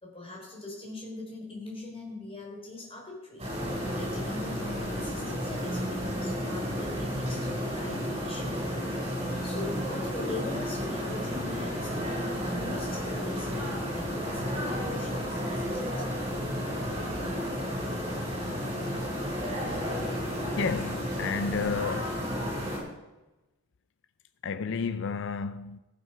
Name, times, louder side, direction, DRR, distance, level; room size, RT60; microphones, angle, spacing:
voice 1, 0.0-3.5 3.9-8.6 9.4-15.9, left 2 dB, 25° left, 4.0 m, -41 dB
sound 1, 3.4-22.8, equal, 25° right, 5.0 m, -32 dB
voice 2, 20.6-22.2 24.4-25.8, left 5 dB, 60° left, 0.4 m, -31 dB
14.5 x 7.6 x 5.9 m
head